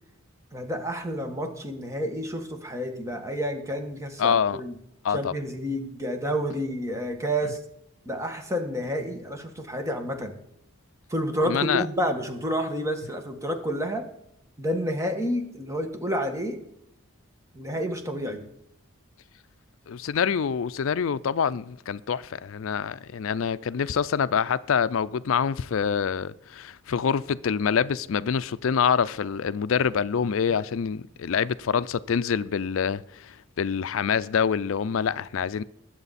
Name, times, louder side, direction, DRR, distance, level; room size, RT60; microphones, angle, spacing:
voice 1, 0.5-4.8 5.1-7.6 8.0-10.3 11.1-14.1 14.6-16.6 17.5-18.4 30.5-30.6, equal, 15° right, 1.5 m, -29 dB
voice 2, 4.2-4.6 5.0-5.3 11.5-11.9 19.9-35.6, left 7 dB, 70° left, 0.4 m, -26 dB
20.5 x 7.8 x 4.1 m
head